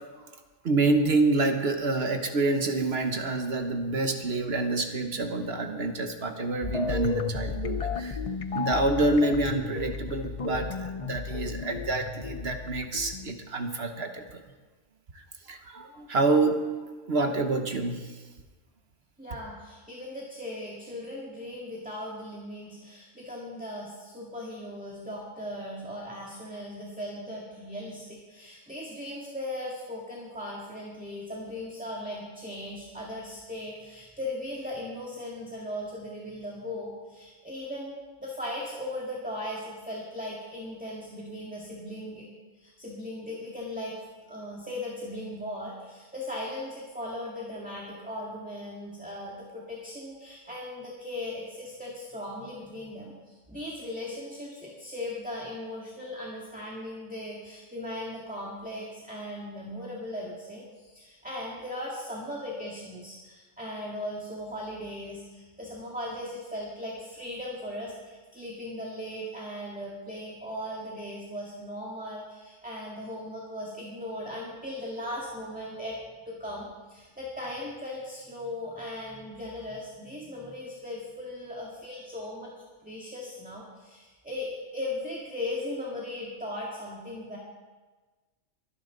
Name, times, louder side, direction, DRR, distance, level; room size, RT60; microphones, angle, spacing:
voice 1, 0.6-8.2 8.5-14.4 15.5-18.1, right 2 dB, 55° right, 5 dB, 1.2 m, -27 dB
sound 1, 6.6-13.3, left 5 dB, 45° left, 0.4 m, -33 dB
voice 2, 19.2-42.3 42.6-44.0 44.3-76.0 76.3-82.5 82.8-87.4, left 1 dB, 5° right, -3 dB, 1.9 m, -38 dB
23.5 x 10.0 x 3.9 m, 1.3 s
omnidirectional pair, 1.3 m